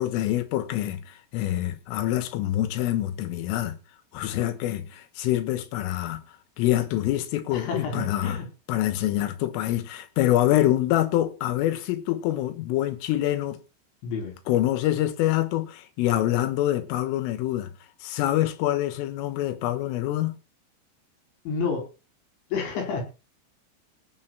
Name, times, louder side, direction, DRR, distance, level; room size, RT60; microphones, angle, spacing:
voice 1, 0.0-3.8 4.1-6.2 6.6-8.4 8.7-13.6 14.5-17.7 18.0-20.4, left 13 dB, 85° left, 3.9 m, -25 dB
voice 2, 7.5-8.5 14.0-14.4 21.5-21.8 22.5-23.0, left 5 dB, 65° left, 6.4 m, -29 dB
18.0 x 6.3 x 6.0 m
omnidirectional pair, 5.7 m